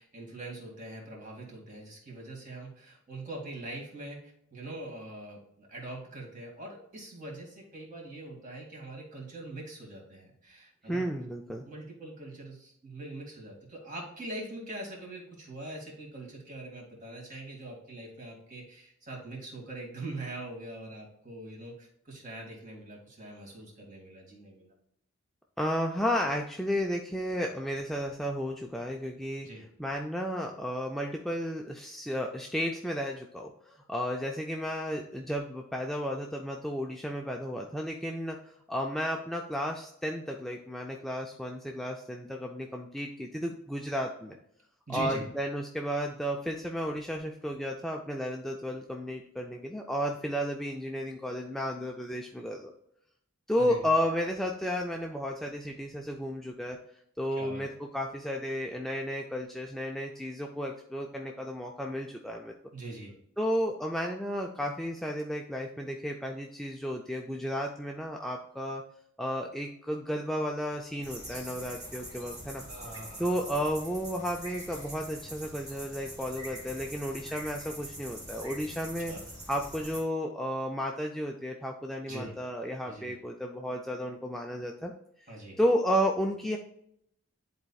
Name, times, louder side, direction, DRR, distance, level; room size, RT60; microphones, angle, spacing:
voice 1, 0.0-11.1 11.5-24.7 29.4-29.6 44.9-45.3 53.6-54.0 57.4-57.6 62.7-63.1 72.6-73.5 79.1-79.2 82.1-82.3 82.8-83.1 85.3-85.6, right 2 dB, 35° right, -1 dB, 2.0 m, -43 dB
voice 2, 10.9-11.6 25.6-29.5 29.8-38.4 38.7-44.4 44.9-52.7 53.5-56.8 57.2-62.5 63.4-68.8 69.2-72.6 73.2-79.1 79.5-84.9 85.6-86.6, equal, ahead, 0 dB, 0.3 m, -33 dB
sound 1, 71.0-80.0, right 1 dB, 15° right, 2.0 m, -44 dB
10.5 x 4.2 x 2.3 m, 0.74 s
head